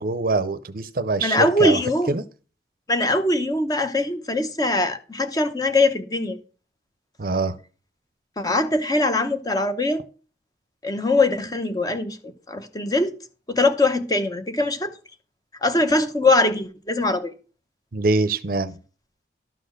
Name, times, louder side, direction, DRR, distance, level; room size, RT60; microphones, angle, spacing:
voice 1, 0.0-1.8 2.1-2.2 7.2-7.5 17.9-18.8, right 3 dB, 50° right, 0.6 m, -24 dB
voice 2, 1.2-2.2 2.9-6.4 8.4-10.0 10.8-13.1 13.5-14.9 15.6-17.3, left 2 dB, 20° left, 0.9 m, -22 dB
12.0 x 4.3 x 6.5 m
head